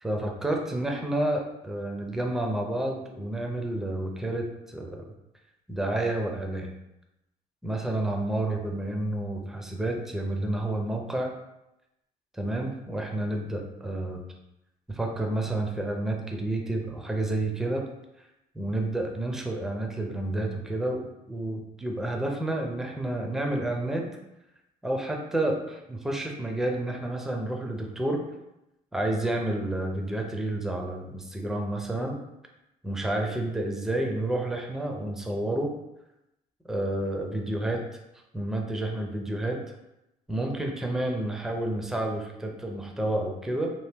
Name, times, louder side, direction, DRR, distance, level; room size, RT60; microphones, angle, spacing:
voice 1, 0.0-5.0 5.7-6.7 7.6-11.3 12.3-14.2 14.9-17.8 18.5-24.1 24.8-28.2 28.9-32.2 32.8-35.7 36.7-37.8 38.3-39.6 40.3-43.7, right 1 dB, ahead, 1 dB, 0.5 m, -30 dB
2.8 x 2.6 x 3.4 m, 0.89 s
cardioid pair, 110°, 17 cm